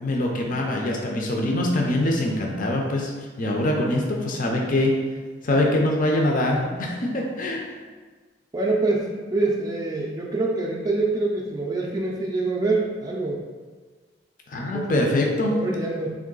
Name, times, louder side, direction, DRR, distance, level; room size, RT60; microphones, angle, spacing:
voice 1, 0.0-3.1 3.4-5.0 5.4-7.7 14.5-15.6, left 1 dB, 45° left, 0 dB, 0.5 m, -23 dB
voice 2, 8.5-13.4 14.7-15.1 15.5-16.1, right 2 dB, 20° right, -3 dB, 0.3 m, -25 dB
3.6 x 3.0 x 3.8 m, 1.4 s
head